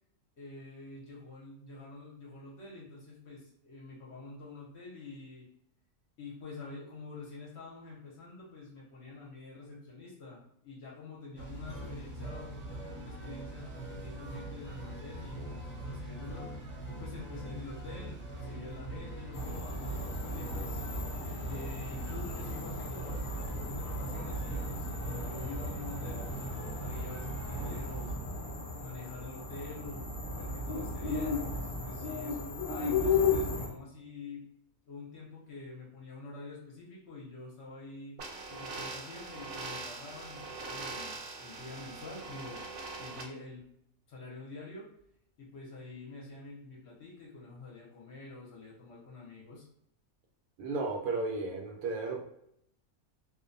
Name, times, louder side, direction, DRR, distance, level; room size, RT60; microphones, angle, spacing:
voice 1, 0.4-5.5 6.2-20.8 21.5-28.1 28.8-30.1 30.3-34.5 34.9-38.2 38.5-42.6 43.0-43.7 44.1-44.9 45.4-49.6, left 3 dB, 60° left, -3 dB, 0.8 m, -47 dB
sound 1, 11.4-28.1, right 1 dB, 15° left, 0.5 m, -42 dB
sound 2, 19.3-33.7, left 3 dB, 75° left, 0.4 m, -35 dB
sound 3, 38.2-43.2, right 3 dB, 65° right, 0.7 m, -42 dB
voice 2, 50.6-52.2, right 3 dB, 85° right, 1 dB, 1.1 m, -34 dB
2.6 x 2.1 x 2.5 m, 0.72 s
omnidirectional pair, 1.5 m